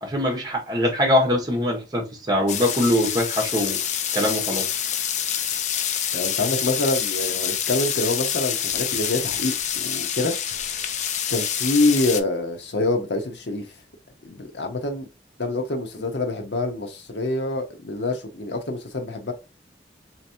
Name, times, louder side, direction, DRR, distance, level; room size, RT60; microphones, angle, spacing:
voice 1, 0.0-3.8 4.1-4.7, left 1 dB, 20° right, 1.1 m, -22 dB
sound 1, 2.5-12.2, left 9 dB, 40° left, 0.4 m, -27 dB
voice 2, 6.1-10.8 11.3-13.7 14.2-15.1 15.4-19.3, left 2 dB, 80° left, 0.9 m, -26 dB
3.4 x 3.0 x 2.8 m
head